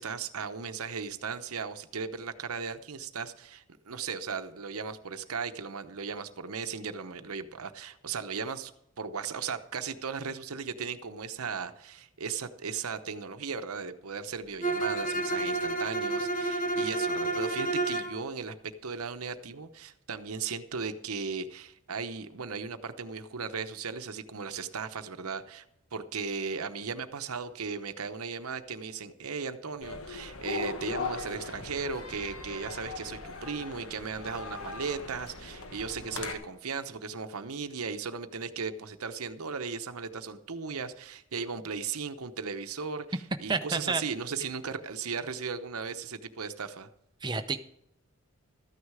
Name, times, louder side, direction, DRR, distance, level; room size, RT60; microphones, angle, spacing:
voice 1, 0.0-8.7 9.0-18.6 18.8-25.6 25.9-46.9, right 5 dB, 85° right, 9 dB, 0.9 m, -36 dB
Bowed string instrument, 14.6-18.2, right 2 dB, 35° left, 1.3 m, -30 dB
sound 1, 29.8-36.3, left 4 dB, 75° left, 1.3 m, -39 dB
voice 2, 43.5-44.0 47.2-47.6, right 4 dB, 20° right, 8 dB, 0.6 m, -29 dB
13.5 x 9.6 x 4.8 m, 0.78 s
head